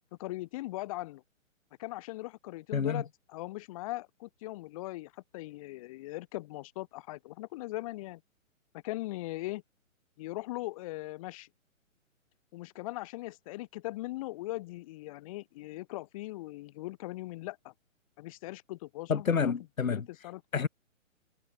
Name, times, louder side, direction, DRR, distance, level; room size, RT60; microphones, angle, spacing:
voice 1, 0.2-1.2 1.8-8.2 8.8-9.6 10.2-11.5 12.5-17.7 18.2-19.5 19.9-20.4, left 19 dB, 25° left, 1.2 m, -40 dB
voice 2, 2.7-3.0 19.1-20.1 20.5-20.7, left 6 dB, 80° left, 0.9 m, -28 dB
figure-of-eight pair, 130°, 40 cm